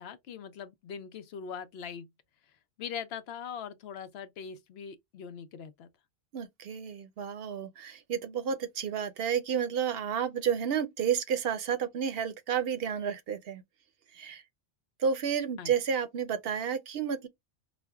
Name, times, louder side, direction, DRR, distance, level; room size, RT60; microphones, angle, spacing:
voice 1, 0.0-2.1 2.8-5.9 15.6-15.7, left 7 dB, 70° left, 0.8 m, -41 dB
voice 2, 6.3-13.6 14.1-14.4 15.0-17.3, right 7 dB, 65° right, 0.8 m, -31 dB
5.0 x 2.0 x 2.2 m
omnidirectional pair, 1.1 m